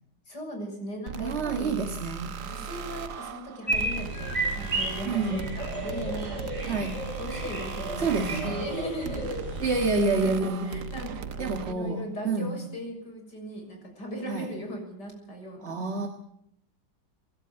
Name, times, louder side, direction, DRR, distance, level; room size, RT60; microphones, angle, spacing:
voice 1, 0.3-1.7 2.4-6.8 7.2-15.8, equal, 70° left, 2 dB, 7.3 m, -38 dB
sound 1, 1.1-11.7, right 6 dB, 70° right, 1.6 m, -38 dB
voice 2, 1.2-2.4 5.1-5.5 6.7-7.0 8.0-8.6 9.6-10.7 11.4-12.6 14.3-14.5 15.6-16.1, right 3 dB, 40° right, 4 dB, 1.9 m, -28 dB
sound 2, 3.7-10.0, right 1 dB, 15° right, 6.9 m, -33 dB
26.0 x 11.5 x 9.0 m, 0.74 s
omnidirectional pair, 1.9 m